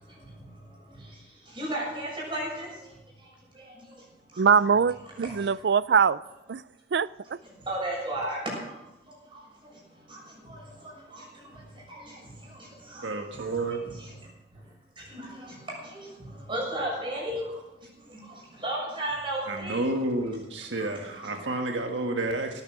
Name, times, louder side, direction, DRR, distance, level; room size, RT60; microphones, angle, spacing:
voice 1, 1.6-2.7 7.7-8.6 16.5-17.4 18.6-19.8 20.8-20.9, right 1 dB, 30° right, 6.7 m, -31 dB
voice 2, 4.4-6.2 6.5-6.6 6.9-7.1, right 6 dB, 65° right, 0.4 m, -22 dB
voice 3, 13.0-13.8 19.5-22.6, right 2 dB, 90° right, 1.5 m, -30 dB
18.0 x 10.5 x 6.1 m
head